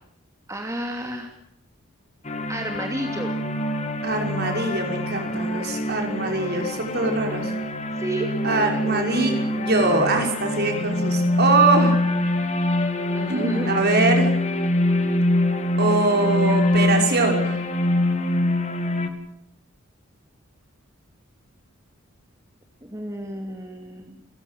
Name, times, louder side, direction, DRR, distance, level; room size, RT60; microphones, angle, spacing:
voice 1, 0.5-1.3 2.5-3.3 7.9-8.3 8.7-8.9 13.1-13.9 22.8-24.2, right 1 dB, 15° right, 3 dB, 2.8 m, -31 dB
sound 1, 2.3-19.1, left 1 dB, 35° left, 2.6 m, -24 dB
voice 2, 4.0-7.5 8.4-12.0 13.3-14.3 15.8-17.6, right 3 dB, 50° right, 3 dB, 6.0 m, -22 dB
29.5 x 16.0 x 9.4 m, 0.75 s
head